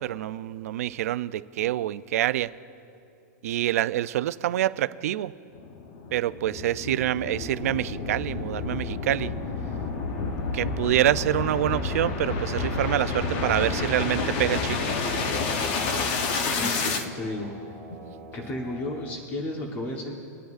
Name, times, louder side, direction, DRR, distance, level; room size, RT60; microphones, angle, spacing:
voice 1, 0.0-2.5 3.4-5.3 6.1-9.3 10.5-16.1, right 13 dB, 60° right, 14 dB, 0.4 m, -27 dB
sound 1, 5.6-17.1, left 4 dB, 40° left, 0.9 m, -29 dB
sound 2, 7.3-19.2, right 3 dB, ahead, 1.8 m, -45 dB
voice 2, 16.5-17.5 18.3-20.1, left 1 dB, 20° left, 1 dB, 1.2 m, -33 dB
23.5 x 10.5 x 2.5 m, 2.7 s
supercardioid pair, 160°, 9 cm